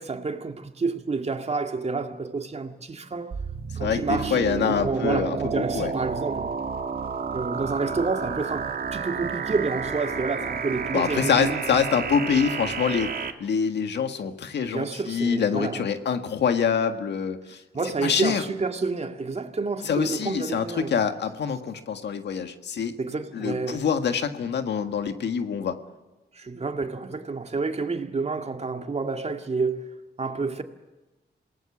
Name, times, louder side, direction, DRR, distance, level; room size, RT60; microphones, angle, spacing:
voice 1, 0.0-3.3 3.8-4.4 4.7-6.6 7.3-11.6 14.7-15.9 17.7-21.0 23.0-23.9 26.3-30.6, right 4 dB, 40° right, 2.2 m, -29 dB
sound 1, 3.3-13.3, right 5 dB, 60° right, 2.0 m, -31 dB
voice 2, 3.8-5.9 10.9-13.1 13.4-17.6 18.0-18.4 19.9-22.9 23.3-25.8, left 7 dB, 90° left, 1.8 m, -25 dB
27.5 x 18.5 x 7.3 m
cardioid pair, 90°, 17 cm